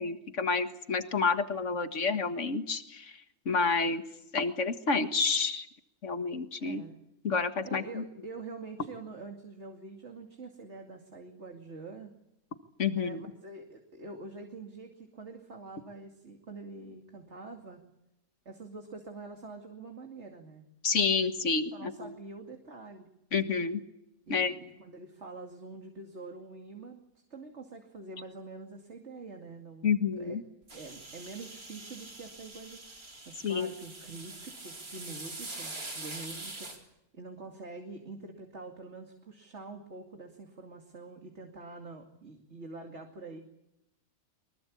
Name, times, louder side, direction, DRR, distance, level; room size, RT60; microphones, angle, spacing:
voice 1, 0.0-3.1 3.5-4.0 4.3-5.7 6.0-6.8 7.2-8.0 12.8-13.2 20.8-22.1 23.3-23.8 24.3-24.5 29.8-30.4 33.4-33.7, left 5 dB, 55° left, 8 dB, 2.0 m, -29 dB
voice 2, 6.6-7.0 7.6-12.1 12.9-17.9 18.4-20.6 21.7-23.1 24.3-27.0 27.3-30.4 30.7-43.4, right 3 dB, 50° right, 3 dB, 2.8 m, -46 dB
sound 1, 30.7-36.8, right 2 dB, 75° right, 5.0 m, -44 dB
24.0 x 22.5 x 8.6 m, 0.84 s
omnidirectional pair, 1.5 m